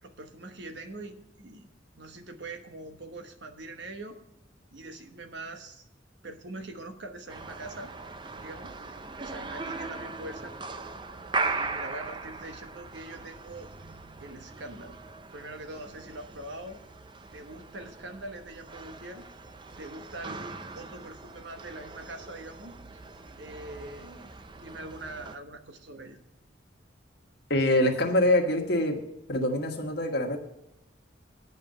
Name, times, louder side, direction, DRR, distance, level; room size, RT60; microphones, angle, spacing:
voice 1, 0.0-1.7 2.0-4.2 4.7-5.9 6.2-8.0 8.4-10.6 11.4-13.7 14.2-15.0 15.3-16.8 17.3-19.3 19.8-22.8 23.4-26.2, right 2 dB, 65° right, 7 dB, 1.1 m, -43 dB
sound 1, 7.3-25.4, right 3 dB, 25° right, 0.5 m, -39 dB
voice 2, 27.5-29.0 29.3-30.4, left 1 dB, 60° left, 3 dB, 1.5 m, -24 dB
10.0 x 5.4 x 7.6 m, 0.84 s
head